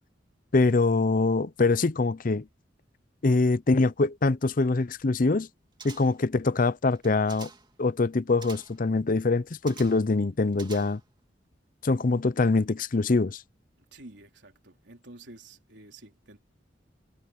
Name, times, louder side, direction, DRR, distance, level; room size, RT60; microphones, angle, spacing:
voice 1, 0.5-2.5 3.2-5.5 5.8-7.5 7.8-11.0 11.8-13.4, left 3 dB, 45° left, 0.6 m, -24 dB
sound 1, 5.8-6.3 6.9-7.7 8.4-8.8 9.7-10.1 10.5-11.2 11.5-11.6, right 5 dB, 25° right, 2.4 m, -47 dB
voice 2, 13.9-16.4, right 2 dB, 70° right, 3.9 m, -49 dB
head